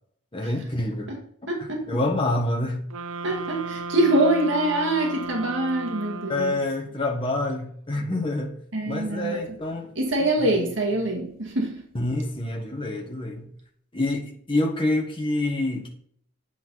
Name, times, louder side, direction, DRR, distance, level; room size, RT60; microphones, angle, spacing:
voice 1, 0.3-1.1 1.9-2.9 6.3-8.5 8.9-9.9 10.4-10.5 11.9-13.5 13.9-15.9, left 2 dB, 25° left, 0 dB, 1.3 m, -27 dB
voice 2, 1.5-1.9 3.2-6.6 8.7-9.4 10.0-11.8, right 1 dB, 70° right, 0 dB, 1.9 m, -24 dB
sound 1, 2.9-6.8, right 3 dB, 85° right, 0.6 m, -35 dB
9.2 x 7.1 x 4.1 m, 0.62 s
head